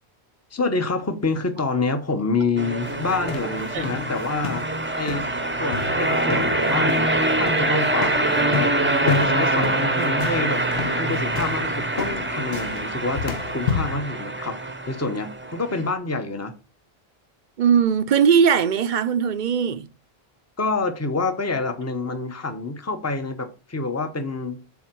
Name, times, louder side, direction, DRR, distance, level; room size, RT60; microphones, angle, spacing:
voice 1, 0.5-4.7 5.0-5.3 5.6-8.7 9.0-10.6 11.0-14.6 14.9-16.5 20.6-24.6, left 3 dB, 15° left, 0.8 m, -27 dB
sound 1, 2.6-15.9, right 2 dB, 15° right, 0.7 m, -24 dB
sound 2, 2.8-14.0, left 6 dB, 65° left, 0.9 m, -32 dB
voice 2, 17.6-19.9, right 7 dB, 55° right, 0.7 m, -19 dB
7.2 x 4.3 x 6.1 m
omnidirectional pair, 1.0 m